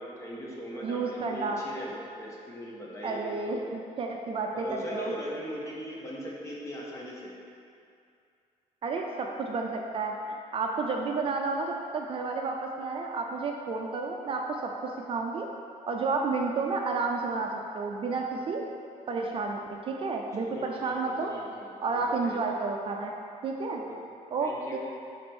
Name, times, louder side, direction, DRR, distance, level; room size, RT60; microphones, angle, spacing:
voice 1, 0.0-3.7 4.5-7.3 20.4-22.4 23.8-24.8, equal, 20° left, -4 dB, 1.3 m, -40 dB
voice 2, 0.8-1.6 3.0-5.1 8.8-15.5 15.9-18.6 19.1-21.3 21.8-23.1 23.4-23.8 24.3-24.8, right 4 dB, 40° right, 1 dB, 0.5 m, -31 dB
5.1 x 5.0 x 6.1 m, 2.5 s
cardioid pair, 145°, 14 cm